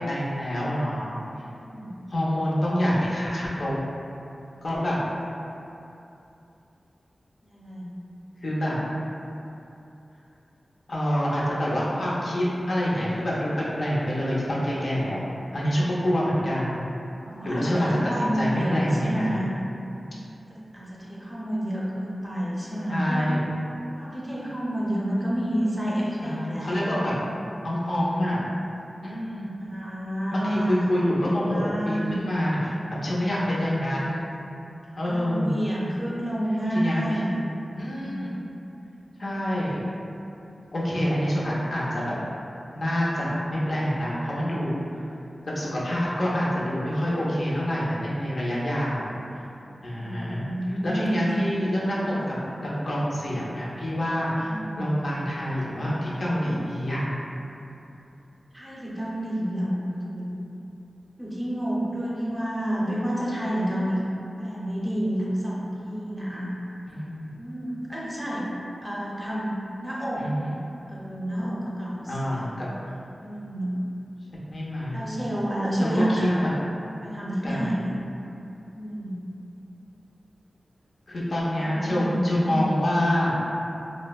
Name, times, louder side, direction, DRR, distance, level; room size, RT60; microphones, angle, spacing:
voice 1, 0.1-1.2 2.1-3.8 4.6-5.0 8.4-8.8 10.9-13.5 13.8-15.3 15.5-16.8 17.4-19.4 22.9-23.5 26.2-27.1 27.6-28.4 29.0-29.5 30.3-32.7 33.0-34.2 35.0-35.5 36.7-37.0 37.8-38.4 39.2-39.8 40.7-42.2 42.7-45.0 45.6-49.4 49.8-50.4 50.7-52.4 52.9-57.0 66.9-67.2 70.2-70.5 72.1-72.8 74.5-75.0 75.8-76.5 77.4-77.8 81.1-83.3, equal, 65° left, -7 dB, 0.5 m, -26 dB
voice 2, 1.6-1.9 7.4-7.9 17.2-19.5 20.5-23.3 23.9-26.8 29.6-30.8 31.3-32.2 35.1-37.3 37.9-38.3 49.9-51.4 52.3-52.4 54.4-54.9 58.5-60.3 61.2-64.1 64.4-66.5 67.4-68.4 68.8-70.3 70.9-72.7 73.2-73.7 74.9-76.5 77.0-78.0 78.8-79.2 81.6-82.7, equal, 15° right, -7 dB, 0.6 m, -29 dB
3.2 x 2.0 x 2.2 m, 2.8 s
wide cardioid pair, 75°, 0 cm